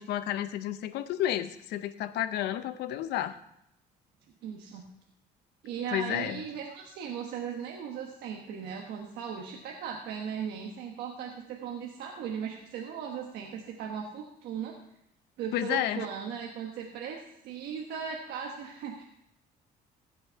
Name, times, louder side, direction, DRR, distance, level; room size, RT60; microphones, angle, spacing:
voice 1, 0.0-3.4 5.9-6.4 15.5-16.1, left 12 dB, 80° left, 13 dB, 0.7 m, -31 dB
voice 2, 4.4-4.8 5.6-14.7 15.4-19.0, right 7 dB, 80° right, 1 dB, 1.3 m, -37 dB
16.0 x 6.4 x 4.5 m, 0.79 s
cardioid pair, 110°, 17 cm